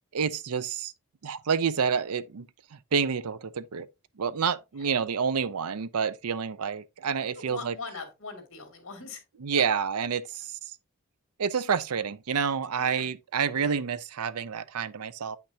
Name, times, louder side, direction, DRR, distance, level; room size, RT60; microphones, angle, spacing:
voice 1, 0.1-0.9 1.2-3.9 4.2-7.7 9.4-10.8 11.4-15.4, right 6 dB, 90° right, 0.5 m, -29 dB
voice 2, 7.4-9.2 12.8-13.1 13.5-13.8, left 4 dB, 60° left, 2.6 m, -41 dB
8.9 x 5.9 x 2.8 m
head